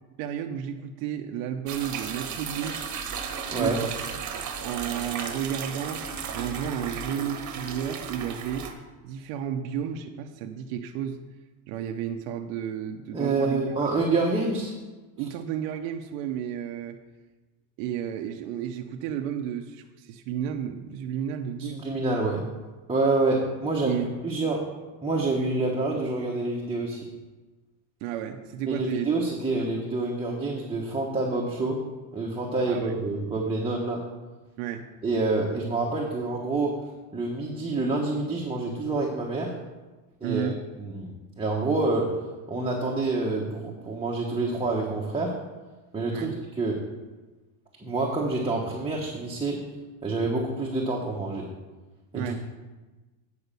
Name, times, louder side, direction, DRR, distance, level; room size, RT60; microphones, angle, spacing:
voice 1, 0.2-2.9 3.5-3.9 4.6-6.0 6.3-8.7 9.0-11.2 11.7-13.9 15.2-17.0 17.8-21.8 23.9-24.1 28.0-29.1 29.6-29.7 32.6-32.9 34.6-34.8 40.2-40.6 46.1-46.3 52.1-52.3, right 9 dB, 85° right, 4 dB, 0.8 m, -32 dB
sound 1, 1.7-8.7, right 6 dB, 40° right, 1.3 m, -35 dB
voice 2, 13.1-14.7 21.7-22.4 22.9-24.6 25.0-27.1 28.7-31.8 32.1-34.0 35.0-36.7 37.1-39.5 40.2-40.5 40.8-42.1 42.5-45.3 45.9-46.3 46.6-46.8 47.8-49.6 50.0-51.5 52.1-52.3, right 3 dB, 10° right, -3 dB, 1.2 m, -27 dB
9.6 x 5.1 x 6.8 m, 1.2 s
cardioid pair, 125°, 45 cm